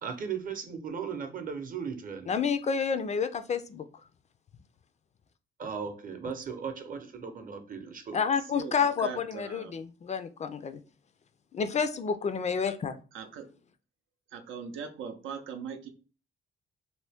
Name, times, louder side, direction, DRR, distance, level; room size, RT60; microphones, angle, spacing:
voice 1, 0.0-2.3 5.6-8.2, right 6 dB, 45° right, 0.7 m, -37 dB
voice 2, 2.2-3.9 8.1-10.8 11.5-13.0, left 6 dB, 35° left, 0.4 m, -29 dB
voice 3, 8.5-9.7 13.1-13.5 14.3-15.9, right 6 dB, 80° right, 0.6 m, -40 dB
2.7 x 2.7 x 3.4 m
cardioid pair, 90°, 20 cm